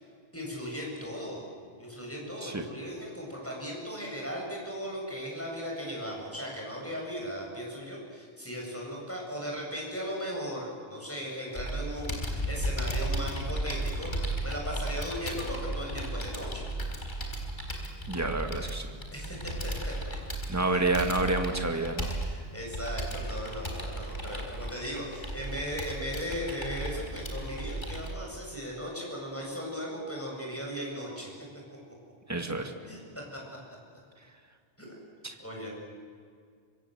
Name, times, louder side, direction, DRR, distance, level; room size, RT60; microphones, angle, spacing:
voice 1, 0.3-1.4 1.8-16.7 19.1-19.9 20.7-20.8 21.8-21.9 22.2-31.3 32.9-33.0 34.8-34.9 35.4-35.7, equal, 10° left, -2 dB, 7.7 m, -37 dB
Computer keyboard, 11.6-28.1, right 1 dB, 45° left, 4.2 m, -35 dB
voice 2, 18.1-18.9 20.5-22.1 32.3-32.7 35.2-35.4, right 2 dB, 15° right, 5 dB, 2.1 m, -29 dB
25.5 x 24.5 x 8.0 m, 2.1 s
omnidirectional pair, 1.1 m